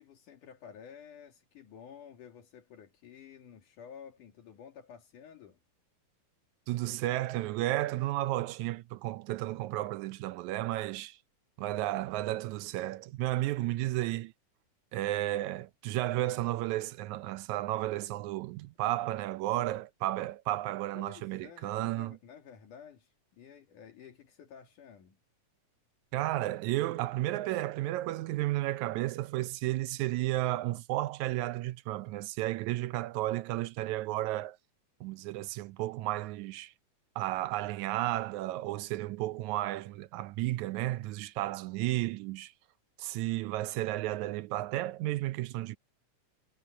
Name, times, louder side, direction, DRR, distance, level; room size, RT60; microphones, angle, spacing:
voice 1, 0.0-5.6 20.9-25.2, left 8 dB, 80° left, 3.8 m, -52 dB
voice 2, 6.7-11.2 11.6-14.3 14.9-22.2 26.1-34.6 35.0-36.7 37.2-42.5 43.0-45.8, right 16 dB, 80° right, 1.8 m, -33 dB
omnidirectional pair, 3.6 m